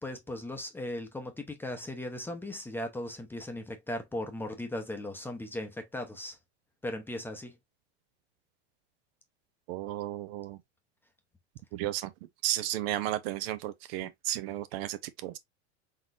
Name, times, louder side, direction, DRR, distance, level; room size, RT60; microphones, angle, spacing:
voice 1, 0.0-6.4 6.8-7.6, left 1 dB, 5° left, 0.7 m, -37 dB
voice 2, 9.7-10.6 11.7-12.1 12.4-15.4, right 13 dB, 60° right, 0.7 m, -33 dB
4.0 x 3.7 x 2.5 m
supercardioid pair, 135°, 34 cm